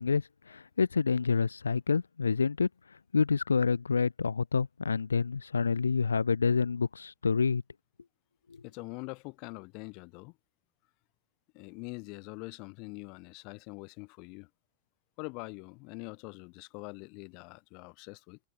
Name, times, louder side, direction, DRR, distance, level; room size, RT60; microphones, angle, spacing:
voice 1, 0.0-7.6, left 5 dB, 75° left, 0.4 m, -28 dB
voice 2, 8.6-10.3 11.5-14.5 15.2-18.4, left 31 dB, 45° left, 3.1 m, -44 dB
figure-of-eight pair, 90°, 0 cm